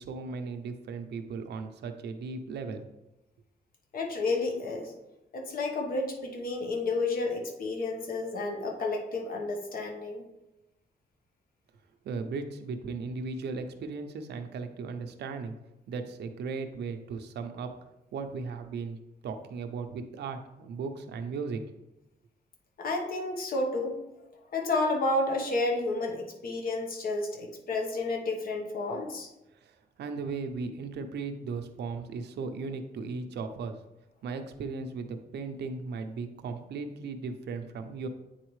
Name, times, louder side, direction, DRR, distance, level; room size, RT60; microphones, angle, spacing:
voice 1, 0.0-2.8 12.0-15.5 15.9-17.7 18.1-19.0 19.2-21.7 29.5-33.8 34.2-38.1, right 4 dB, 85° right, 7 dB, 0.7 m, -37 dB
voice 2, 3.9-4.9 5.3-10.2 22.8-23.9 24.5-29.3, left 2 dB, 60° left, 2 dB, 1.1 m, -31 dB
8.8 x 4.1 x 3.2 m, 0.94 s
cardioid pair, 125°, 17 cm